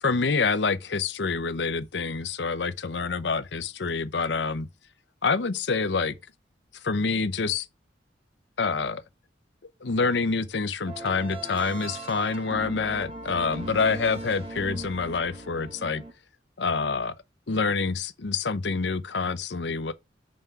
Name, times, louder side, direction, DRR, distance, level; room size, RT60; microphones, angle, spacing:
voice 1, 0.0-4.7 5.2-6.2 6.8-7.7 8.6-9.0 9.8-16.0 16.6-17.1 17.5-19.9, left 4 dB, 75° left, 0.7 m, -27 dB
sound 1, 10.9-16.1, right 2 dB, 30° right, 1.5 m, -39 dB
5.6 x 5.3 x 4.7 m
head